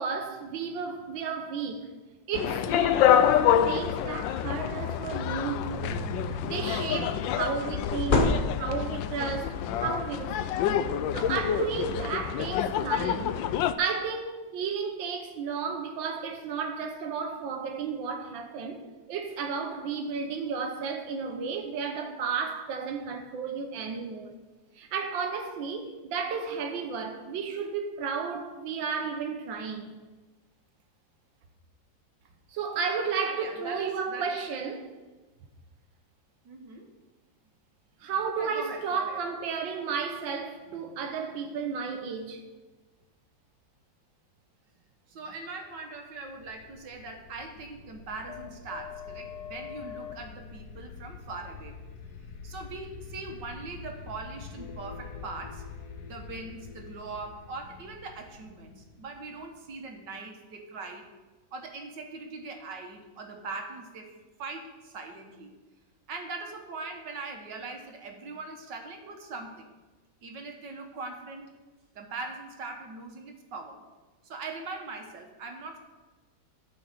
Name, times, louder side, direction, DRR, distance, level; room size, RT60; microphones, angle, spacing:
voice 1, 0.0-1.9 2.3-10.7 11.1-13.4 13.8-18.8 19.1-24.3 24.8-29.9 32.5-34.9 38.0-42.4, right 5 dB, 85° right, 1.7 m, -33 dB
sound 1, 2.3-13.7, left 10 dB, 80° left, 1.3 m, -27 dB
sound 2, 4.5-4.7 4.9-6.1 7.7-9.0, left 2 dB, 40° left, 0.8 m, -28 dB
voice 2, 33.2-34.4 36.5-36.9 38.4-39.2 45.1-51.8 52.4-55.6 56.0-61.1 61.5-64.1 64.4-65.5 66.1-69.7 70.2-71.5 72.0-73.8 74.2-75.8, right 3 dB, 65° right, 2.0 m, -41 dB
sound 3, 46.2-59.9, left 6 dB, 65° left, 1.2 m, -45 dB
13.0 x 5.8 x 6.7 m
omnidirectional pair, 2.0 m